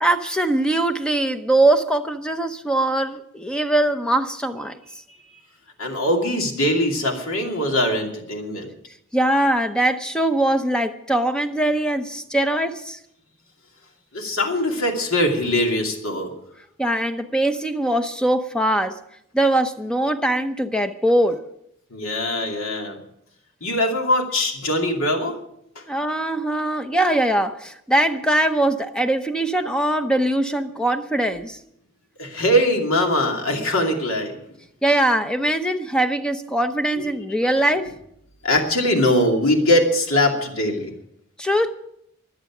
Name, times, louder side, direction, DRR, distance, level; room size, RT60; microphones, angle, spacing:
voice 1, 0.0-4.8 9.1-13.0 16.8-19.0 19.3-21.4 25.9-31.6 34.8-37.9 41.4-41.7, right 1 dB, 5° left, 0.7 m, -21 dB
voice 2, 5.8-8.7 14.1-16.3 21.9-23.0 23.6-25.4 25.8-25.9 32.2-34.4 36.9-37.0 38.4-40.9, left 1 dB, 65° left, 2.6 m, -21 dB
23.5 x 8.1 x 6.0 m
head